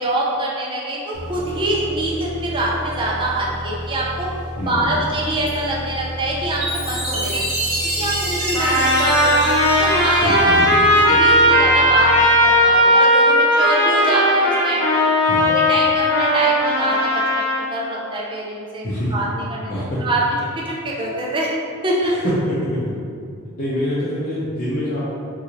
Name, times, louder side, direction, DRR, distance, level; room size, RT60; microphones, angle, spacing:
voice 1, 0.0-4.3 4.7-9.4 9.8-10.4 10.9-15.0 15.5-18.8 19.1-19.7 20.0-21.5 21.8-22.2, right 1 dB, 20° right, -4 dB, 0.5 m, -25 dB
sound 1, 1.1-12.8, equal, 80° left, 0.9 m, -32 dB
voice 2, 4.6-5.0 10.2-10.8 15.2-15.5 18.8-19.1 19.7-20.0 22.0-22.9 23.6-25.0, equal, 40° left, -10 dB, 0.6 m, -25 dB
Chime, 6.6-11.3, right 1 dB, 60° right, 1.0 m, -26 dB
Trumpet, 8.5-17.6, equal, 15° left, 0.8 m, -16 dB
3.8 x 2.7 x 3.0 m, 2.4 s
head